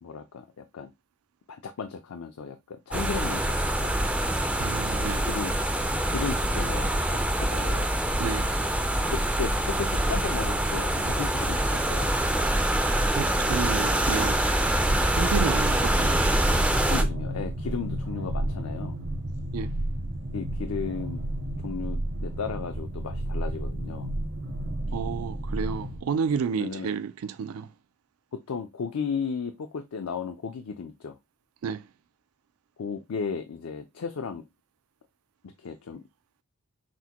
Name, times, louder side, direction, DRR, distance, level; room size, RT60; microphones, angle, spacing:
voice 1, 0.0-0.9 1.5-4.2 5.2-5.5 6.1-7.9 9.1-12.1 16.9-19.0 20.3-21.2 21.6-24.1 26.6-26.9 28.3-31.2 32.8-34.4 35.6-36.0, left 5 dB, 80° left, 0.5 m, -35 dB
sound 1, 2.9-17.0, right 1 dB, 5° right, 0.3 m, -25 dB
voice 2, 4.6-5.3 8.2-8.5 13.1-14.4 15.2-16.4 19.5-19.7 24.9-27.7 31.6-31.8, right 6 dB, 80° right, 0.4 m, -31 dB
sound 2, 14.6-26.0, right 1 dB, 50° right, 0.8 m, -32 dB
6.0 x 2.1 x 2.9 m
head